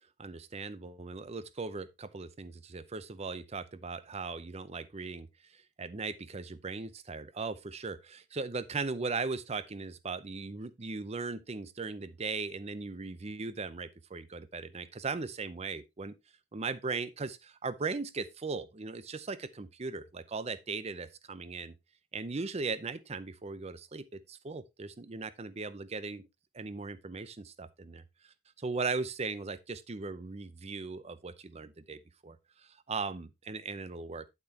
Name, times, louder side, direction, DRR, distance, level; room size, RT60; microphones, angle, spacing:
voice 1, 0.2-16.1 16.5-21.7 22.1-26.3 26.5-32.4 32.6-34.3, right 4 dB, 30° right, 0.6 m, -38 dB
8.9 x 8.3 x 2.8 m
head